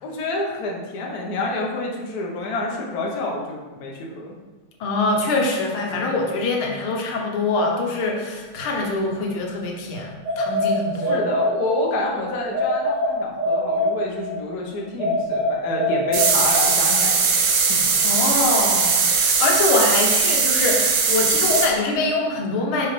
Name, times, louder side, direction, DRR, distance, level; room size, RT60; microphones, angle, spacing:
voice 1, 0.0-4.3 11.0-17.4 17.7-17.9, left 2 dB, 55° left, -1 dB, 1.3 m, -28 dB
voice 2, 4.8-11.2 18.0-22.9, left 3 dB, 80° left, 1 dB, 1.7 m, -24 dB
sound 1, 10.2-12.0 12.5-14.4 15.0-16.9, left 1 dB, 20° right, 1.9 m, -24 dB
sound 2, 16.1-21.7, right 5 dB, 70° right, 1.5 m, -19 dB
6.2 x 5.0 x 3.3 m, 1.2 s
omnidirectional pair, 2.3 m